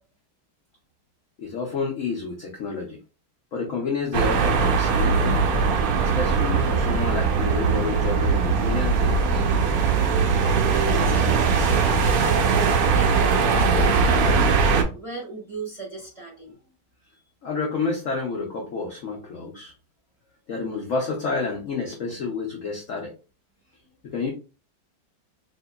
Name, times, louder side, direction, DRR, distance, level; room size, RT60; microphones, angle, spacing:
voice 1, 1.4-3.0 3.5-5.4 6.0-9.4 17.4-19.7 20.5-23.1 24.0-24.3, left 4 dB, 85° left, 0 dB, 0.6 m, -29 dB
sound 1, 4.1-14.8, right 5 dB, 80° right, 0.8 m, -20 dB
voice 2, 10.5-16.6, right 3 dB, 20° right, -3 dB, 0.9 m, -36 dB
3.6 x 2.9 x 2.2 m, 0.33 s
omnidirectional pair, 2.2 m